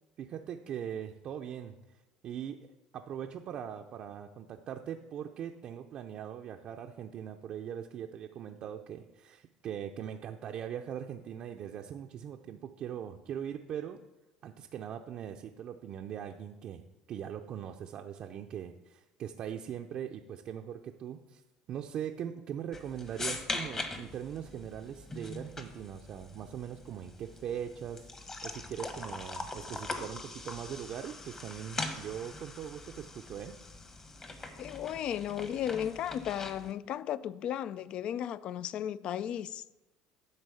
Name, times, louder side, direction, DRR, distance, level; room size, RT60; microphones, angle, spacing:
voice 1, 0.2-1.8 2.2-2.6 2.9-14.0 14.4-16.8 17.1-21.4 21.7-33.5, right 9 dB, 50° right, 0.5 m, -41 dB
sound 1, 22.7-36.7, left 2 dB, 25° left, 1.1 m, -42 dB
voice 2, 34.6-39.6, left 10 dB, 50° left, 0.4 m, -35 dB
9.8 x 4.0 x 6.9 m
supercardioid pair, 110°, 2 cm